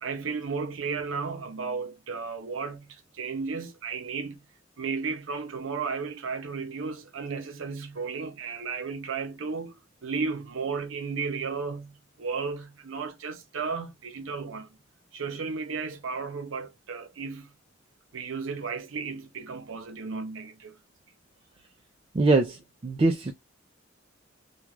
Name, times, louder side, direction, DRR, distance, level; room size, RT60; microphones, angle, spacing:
voice 1, 0.0-4.4 4.8-9.8 10.0-14.8 15.1-17.5 18.1-20.8, right 5 dB, 85° right, 0.6 m, -34 dB
voice 2, 22.1-22.6 22.8-23.3, right 2 dB, 30° right, 0.3 m, -22 dB
2.4 x 2.2 x 3.0 m
head